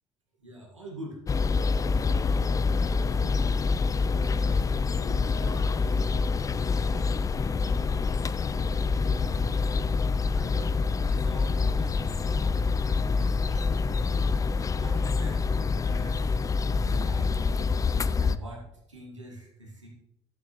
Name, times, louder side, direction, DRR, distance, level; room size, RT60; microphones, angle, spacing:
voice 1, 0.4-2.3 3.1-3.5 4.2-7.1 8.4-9.9 10.3-10.8 11.1-16.4 16.7-17.6 18.2-18.6 18.9-19.9, right 1 dB, 85° right, -1 dB, 1.8 m, -45 dB
sound 1, 1.3-18.4, left 4 dB, 20° left, 0.4 m, -26 dB
12.0 x 8.5 x 3.1 m, 0.88 s
figure-of-eight pair, 55°, 15 cm